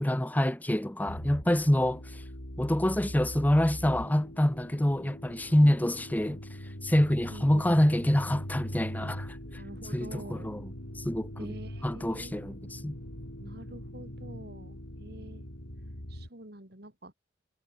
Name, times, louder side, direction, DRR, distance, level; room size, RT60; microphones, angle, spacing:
voice 1, 0.0-2.2 2.6-6.4 6.8-9.6 9.9-10.6 10.9-11.5 11.8-13.0, left 1 dB, 10° left, 0.6 m, -26 dB
sound 1, 1.1-16.3, equal, 85° left, 7.2 m, -42 dB
voice 2, 7.3-7.8 9.4-10.5 11.4-12.3 13.4-15.5 16.1-17.1, right 1 dB, 50° right, 3.6 m, -46 dB
head